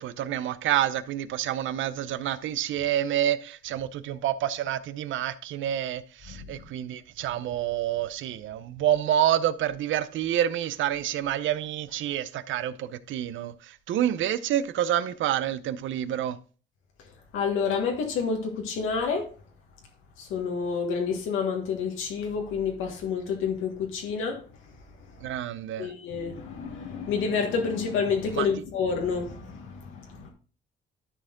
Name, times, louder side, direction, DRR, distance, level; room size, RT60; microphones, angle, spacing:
voice 1, 0.0-16.4 25.2-25.9 28.4-28.5, right 11 dB, 75° right, 0.7 m, -28 dB
voice 2, 17.3-19.3 20.2-24.4 25.2-25.4 25.8-30.3, left 5 dB, 90° left, 1.5 m, -29 dB
12.5 x 4.4 x 3.8 m
cardioid pair, 90°, 20 cm